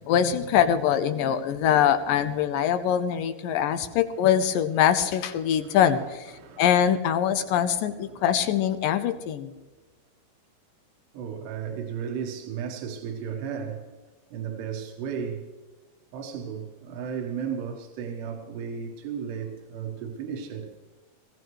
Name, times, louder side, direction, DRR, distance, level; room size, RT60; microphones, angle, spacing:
voice 1, 0.1-6.3 6.6-9.5, left 9 dB, 80° left, 2.1 m, -23 dB
voice 2, 3.5-3.8 4.1-4.3 5.4-6.7 7.2-8.2 11.1-14.0 14.3-15.5 16.1-20.7, right 7 dB, 85° right, 3.5 m, -35 dB
19.5 x 17.5 x 3.2 m
omnidirectional pair, 4.7 m